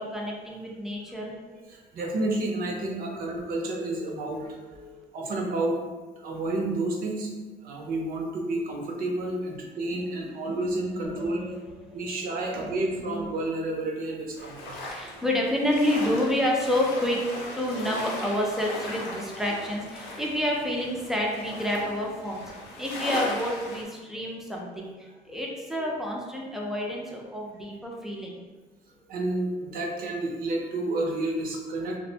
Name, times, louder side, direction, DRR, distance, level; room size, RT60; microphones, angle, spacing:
voice 1, 0.0-1.3 4.4-5.0 9.8-10.5 11.2-11.6 11.9-12.0 12.4-12.7 14.9-28.4, left 1 dB, ahead, -2 dB, 0.5 m, -29 dB
voice 2, 1.5-4.6 5.1-5.8 6.2-7.3 7.6-11.5 11.9-14.8 25.8-25.9 29.1-32.0, right 2 dB, 60° right, 0 dB, 0.6 m, -30 dB
sound 1, 14.4-23.8, left 2 dB, 90° left, 0.6 m, -38 dB
2.5 x 2.1 x 2.7 m, 1.3 s
cardioid pair, 110°, 17 cm